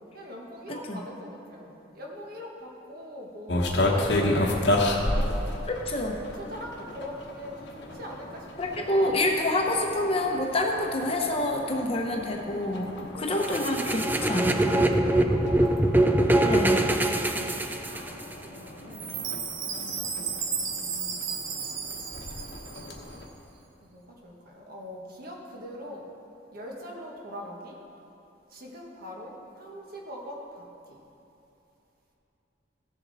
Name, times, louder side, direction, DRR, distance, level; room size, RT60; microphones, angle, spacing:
voice 1, 0.0-5.5 6.2-9.3 13.1-13.7 14.9-15.9 17.1-19.2 19.7-21.2 23.8-26.1 26.5-27.7 28.5-30.6 30.9-31.0, equal, 50° right, -1 dB, 1.4 m, -43 dB
sound 1, 3.5-23.3, left 1 dB, 65° left, 1.1 m, -33 dB
voice 2, 5.7-6.2 8.6-14.9 16.4-16.8, left 1 dB, 30° left, 1 dB, 0.9 m, -27 dB
sound 2, 13.4-18.3, right 1 dB, 10° right, 0.4 m, -23 dB
Chime, 18.9-23.2, right 6 dB, 90° right, 0.9 m, -34 dB
15.0 x 7.0 x 4.1 m, 2.9 s
head